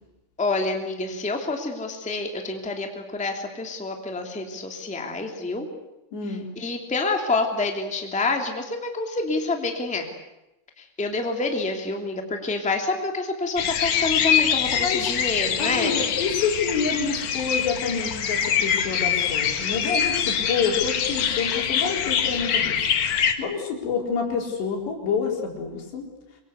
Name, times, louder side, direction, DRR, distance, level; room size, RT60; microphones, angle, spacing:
voice 1, 0.4-5.7 6.6-10.1 11.0-16.0, left 3 dB, ahead, 3 dB, 2.0 m, -27 dB
voice 2, 6.1-6.5 14.8-15.1 15.6-26.1, left 5 dB, 85° left, 1 dB, 6.4 m, -28 dB
sound 1, 13.6-23.3, left 8 dB, 55° left, 2.4 m, -24 dB
26.0 x 23.0 x 8.2 m, 0.94 s
omnidirectional pair, 4.9 m